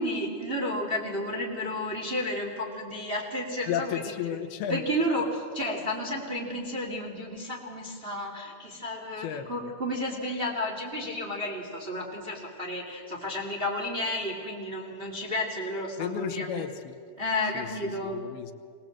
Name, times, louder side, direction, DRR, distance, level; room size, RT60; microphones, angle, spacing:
voice 1, 0.0-4.4 4.7-16.6 17.2-18.2, left 1 dB, 20° right, -1 dB, 1.6 m, -32 dB
voice 2, 3.7-4.8 9.2-9.7 16.0-16.9 17.5-17.7 18.1-18.5, left 10 dB, 80° left, 9 dB, 2.7 m, -33 dB
22.5 x 18.5 x 7.7 m, 2.2 s
omnidirectional pair, 4.5 m